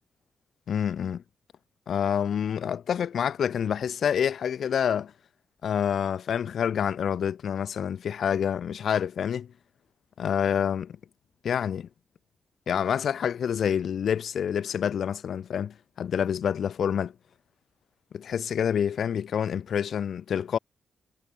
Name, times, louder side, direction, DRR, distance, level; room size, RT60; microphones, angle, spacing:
voice 1, 0.7-1.2 1.9-5.1 5.6-9.5 10.2-11.0 11.4-11.9 12.7-17.1 18.1-20.6, left 8 dB, 70° left, 1.0 m, -27 dB
cardioid pair, 105°, 0 cm